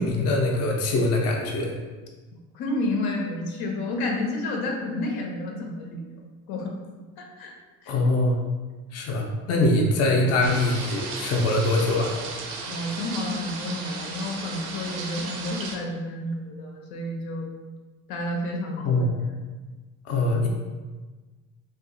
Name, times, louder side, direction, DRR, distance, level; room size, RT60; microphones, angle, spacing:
voice 1, 0.0-1.7 7.9-8.4 8.9-12.2 18.8-19.1 20.1-20.5, left 2 dB, 45° left, 0 dB, 0.5 m, -23 dB
voice 2, 2.5-6.1 6.5-6.7 7.2-7.5 7.8-7.9 10.0-10.2 12.7-17.5 18.1-19.3, left 1 dB, 80° left, 1 dB, 0.7 m, -30 dB
sound 1, 10.4-15.8, right 4 dB, 85° right, 0.6 m, -35 dB
2.7 x 2.5 x 3.7 m, 1.3 s
cardioid pair, 145°, 36 cm